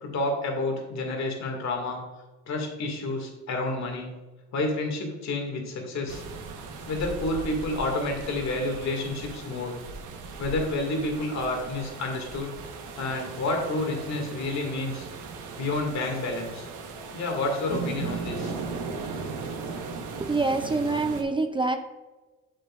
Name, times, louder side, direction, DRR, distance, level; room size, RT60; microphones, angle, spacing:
voice 1, 0.0-2.0 2.5-4.1 4.5-6.2 6.9-9.7 10.4-12.5 13.0-15.1 15.6-16.7 17.1-18.6, left 2 dB, 65° left, 2 dB, 2.2 m, -29 dB
sound 1, 6.1-21.2, right 4 dB, 90° right, 1.2 m, -38 dB
voice 2, 20.2-21.8, right 3 dB, 15° right, 6 dB, 0.5 m, -26 dB
8.0 x 7.9 x 2.5 m, 1.2 s
cardioid pair, 90°, 30 cm